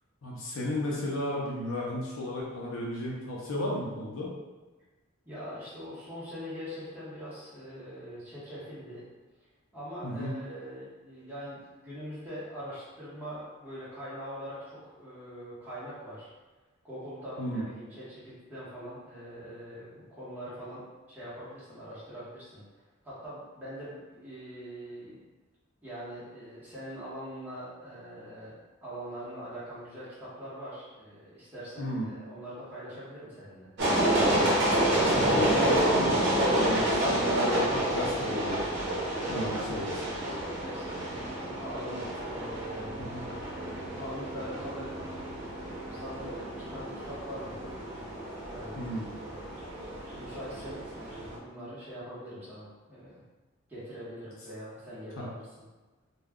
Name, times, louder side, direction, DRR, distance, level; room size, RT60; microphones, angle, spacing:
voice 1, 0.2-4.3 10.0-10.3 17.4-17.6 31.8-32.1 35.0-38.6 39.3-39.9 43.1-43.2 48.8-49.1 55.2-55.3, left 1 dB, 70° left, -4 dB, 0.6 m, -33 dB
voice 2, 5.2-9.0 9.7-16.3 16.8-22.6 23.0-25.2 25.8-28.5 28.8-33.7 39.3-43.3 43.5-45.6 45.9-47.8 48.5-49.2 50.2-53.2 53.7-55.4, equal, 10° right, -11 dB, 1.0 m, -43 dB
sound 1, 33.8-51.4, right 1 dB, 55° right, 0.8 m, -29 dB
2.3 x 2.2 x 3.5 m, 1.2 s
head